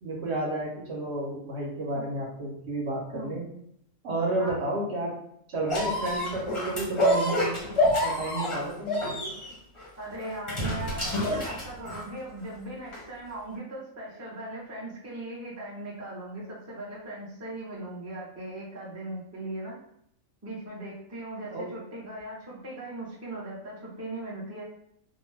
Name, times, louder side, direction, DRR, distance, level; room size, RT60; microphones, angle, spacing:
voice 1, 0.0-3.4 4.0-5.2 5.5-7.6 8.0-9.0 21.5-21.7, right 2 dB, 60° right, -3 dB, 1.0 m, -31 dB
sound 1, 5.7-12.2 12.9-13.0, left 1 dB, 30° left, 0.7 m, -28 dB
voice 2, 10.0-19.8 20.4-24.6, right 1 dB, 15° right, -5 dB, 0.6 m, -39 dB
2.6 x 2.2 x 3.2 m, 0.73 s
omnidirectional pair, 1.4 m